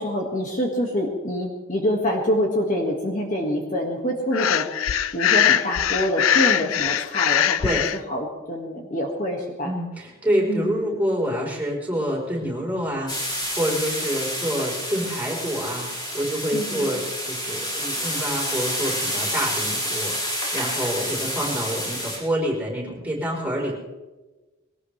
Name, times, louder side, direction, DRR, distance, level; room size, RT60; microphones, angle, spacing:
voice 1, 0.0-7.8 8.1-9.7 10.5-10.7 16.5-16.9, equal, 40° left, 1 dB, 1.8 m, -26 dB
Breathing, 4.3-8.0, left 9 dB, 70° left, 0.5 m, -21 dB
voice 2, 9.6-23.7, equal, 10° right, -3 dB, 4.0 m, -27 dB
sound 1, 13.1-22.2, equal, 20° left, 4.9 m, -29 dB
21.5 x 18.5 x 3.3 m, 1.2 s
head